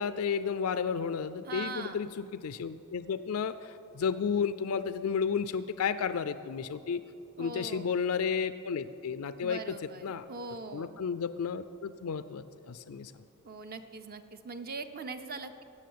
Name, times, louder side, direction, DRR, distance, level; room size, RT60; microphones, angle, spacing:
voice 1, 0.0-7.0 7.4-9.8 10.0-10.2 10.7-13.1, left 6 dB, 70° left, 12 dB, 0.4 m, -32 dB
voice 2, 1.4-2.0 7.4-7.9 9.4-11.0 13.4-15.6, right 4 dB, 45° right, 8 dB, 0.7 m, -41 dB
16.0 x 7.1 x 9.5 m, 2.7 s
head